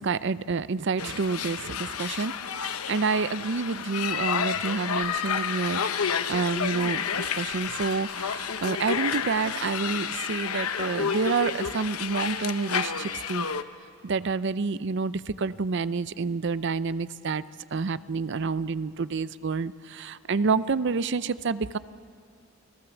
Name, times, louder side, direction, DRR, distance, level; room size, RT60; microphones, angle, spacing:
voice 1, 0.0-2.3 2.6-13.5 14.0-17.4 17.7-21.8, right 4 dB, 55° right, 16 dB, 0.5 m, -28 dB
sound 1, 1.0-13.6, left 7 dB, 80° left, 0.9 m, -30 dB
29.0 x 17.5 x 7.1 m, 2.5 s
head